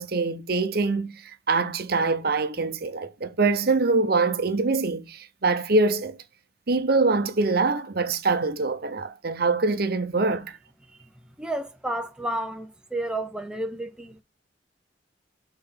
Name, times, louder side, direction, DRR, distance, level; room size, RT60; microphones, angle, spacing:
voice 1, 0.0-6.2 6.7-10.6, right 3 dB, 55° right, 0.8 m, -24 dB
voice 2, 11.4-14.2, right 1 dB, 5° right, 0.5 m, -31 dB
5.9 x 4.0 x 5.5 m
head